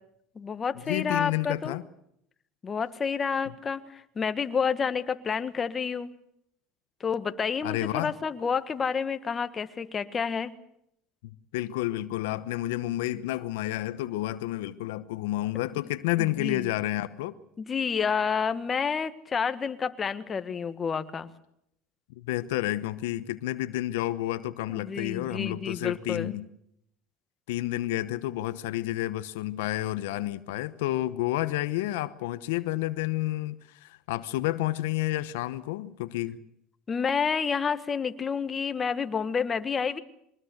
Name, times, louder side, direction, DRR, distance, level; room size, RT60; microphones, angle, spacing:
voice 1, 0.3-1.8 2.6-6.1 7.0-10.5 16.2-16.7 17.6-21.3 24.7-26.3 36.9-40.0, left 6 dB, 30° left, 10 dB, 1.6 m, -29 dB
voice 2, 0.9-1.8 7.6-8.1 11.2-17.4 22.2-26.5 27.5-36.4, left 15 dB, 85° left, 13 dB, 1.0 m, -30 dB
23.0 x 19.5 x 8.0 m, 0.75 s
supercardioid pair, 100°, 0 cm